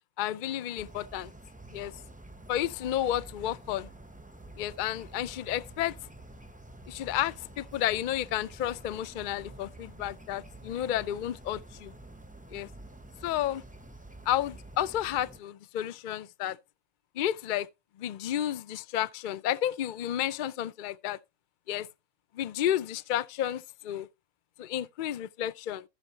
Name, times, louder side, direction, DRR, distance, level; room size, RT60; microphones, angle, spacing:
voice 1, 0.2-1.3 1.7-1.9 2.5-3.9 4.6-6.0 6.9-11.9 12.5-12.7 13.2-13.6 14.3-16.6 17.2-17.7 18.0-21.2 21.7-21.9 22.3-24.1 24.6-25.8, left 11 dB, 60° left, 0.5 m, -31 dB
sound 1, 0.7-15.4, right 1 dB, 10° right, 0.6 m, -49 dB
15.0 x 6.4 x 2.8 m
omnidirectional pair, 1.4 m